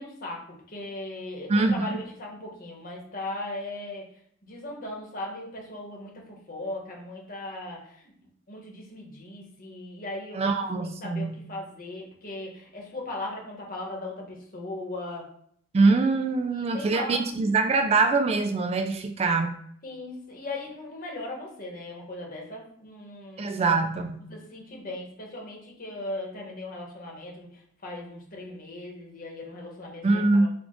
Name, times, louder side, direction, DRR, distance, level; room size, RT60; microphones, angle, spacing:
voice 1, 0.0-4.1 4.4-8.1 8.5-10.6 11.0-15.3 16.5-17.5 19.8-23.8 24.3-30.5, left 2 dB, 45° left, -1 dB, 1.3 m, -38 dB
voice 2, 1.5-2.0 10.3-11.4 15.7-19.5 23.4-24.2 30.0-30.5, right 3 dB, 30° right, 7 dB, 0.3 m, -23 dB
4.6 x 2.4 x 3.8 m, 0.64 s
head